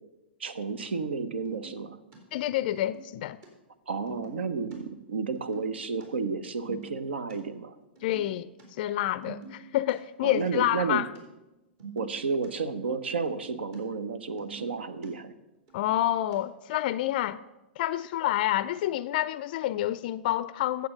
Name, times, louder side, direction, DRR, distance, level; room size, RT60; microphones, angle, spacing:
voice 1, 0.4-2.0 3.9-7.8 10.2-11.0 11.9-15.3, right 4 dB, 75° right, 0.8 m, -32 dB
sound 1, 0.8-0.9 1.1-1.2 1.5-2.2 2.8-3.5 3.7-3.8 4.1-4.8 5.4-6.0 6.3-7.3 7.8-8.6 8.9-9.0 9.2-9.9 10.4-11.2 11.5-12.5 12.9-13.8 14.0-15.1 15.5-16.4, right 5 dB, 45° right, 3.3 m, -46 dB
voice 2, 2.3-3.4 8.0-8.5 8.8-11.1 15.7-17.4 17.8-20.9, left 14 dB, 55° left, 0.4 m, -28 dB
9.5 x 7.9 x 6.5 m
hypercardioid pair, 105°, 6 cm